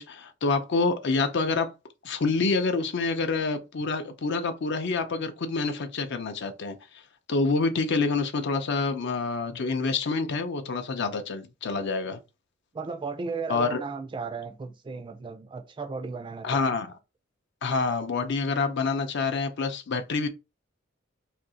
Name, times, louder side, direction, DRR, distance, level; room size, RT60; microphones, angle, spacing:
voice 1, 0.0-1.7 2.0-6.8 7.3-12.2 13.5-13.8 16.4-16.9 17.6-20.3, left 4 dB, 60° left, 0.5 m, -27 dB
voice 2, 12.7-16.8, right 4 dB, 25° right, 0.3 m, -35 dB
2.7 x 2.5 x 3.8 m
head